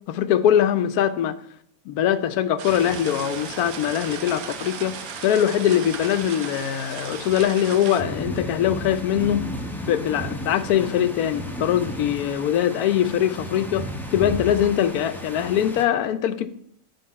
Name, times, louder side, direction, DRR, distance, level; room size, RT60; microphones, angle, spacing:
voice 1, 0.1-1.3 1.9-5.0 5.2-9.5 9.8-16.5, left 10 dB, 85° left, 1.1 m, -22 dB
sound 1, 2.6-15.8, equal, ahead, 0.7 m, -35 dB
sound 2, 2.6-8.0, right 8 dB, 75° right, 1.1 m, -36 dB
10.0 x 3.8 x 5.6 m
omnidirectional pair, 1.5 m